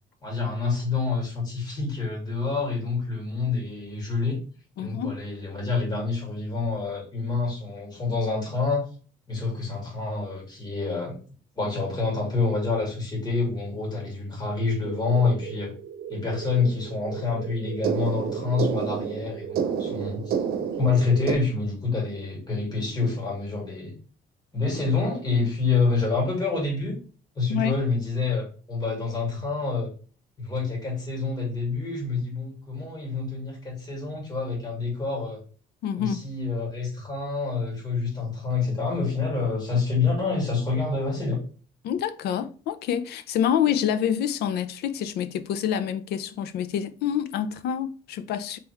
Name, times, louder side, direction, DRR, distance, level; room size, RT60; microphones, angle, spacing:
voice 1, 0.2-4.4 4.8-8.9 9.3-11.2 11.6-15.7 16.1-20.4 20.7-23.9 24.5-27.0 27.4-29.9 30.4-35.4 36.0-41.4, left 4 dB, 25° left, 2.4 m, -27 dB
voice 2, 4.8-5.1 27.5-27.7 35.8-36.2 41.8-48.6, left 9 dB, 75° left, 0.6 m, -27 dB
sound 1, 14.9-21.3, right 7 dB, 70° right, 0.8 m, -31 dB
4.2 x 3.5 x 3.2 m
cardioid pair, 110°, 17 cm